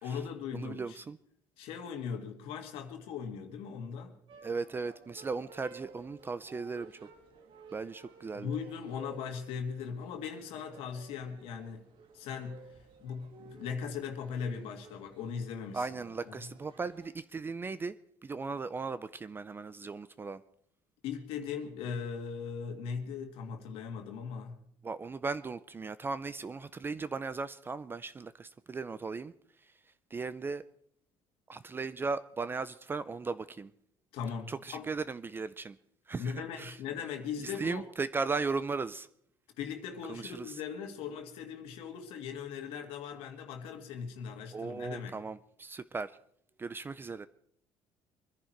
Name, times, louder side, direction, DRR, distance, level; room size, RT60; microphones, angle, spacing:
voice 1, 0.0-1.0 1.6-4.1 8.3-11.8 12.1-12.7 13.0-15.9 16.3-16.4 21.0-24.6 34.1-34.9 36.2-37.8 39.6-45.1, left 6 dB, 80° left, 1.9 m, -39 dB
voice 2, 0.5-1.2 4.4-7.0 7.7-8.5 15.7-18.0 18.2-20.4 24.8-29.3 30.1-30.6 31.5-33.7 34.5-35.8 36.1-36.8 37.4-39.1 40.1-40.5 44.5-46.1 46.6-47.3, right 4 dB, 20° right, 0.5 m, -37 dB
sound 1, 4.3-17.1, right 4 dB, 60° right, 2.1 m, -55 dB
24.0 x 10.5 x 4.6 m
cardioid pair, 115°, 9 cm